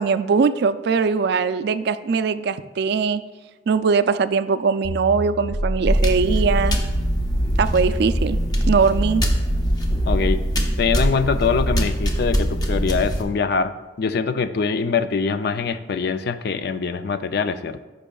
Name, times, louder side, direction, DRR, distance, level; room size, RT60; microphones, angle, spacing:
voice 1, 0.0-3.2 3.7-6.8 7.6-8.4 8.7-9.2, right 5 dB, 60° right, 13 dB, 0.3 m, -21 dB
sound 1, 4.8-10.3, equal, 75° left, 1.1 m, -27 dB
sound 2, 5.9-13.2, equal, 20° left, 0.7 m, -23 dB
voice 2, 10.1-10.4 10.8-13.7 14.0-17.8, left 5 dB, 55° left, 11 dB, 0.4 m, -23 dB
14.0 x 5.4 x 2.3 m, 1.3 s
head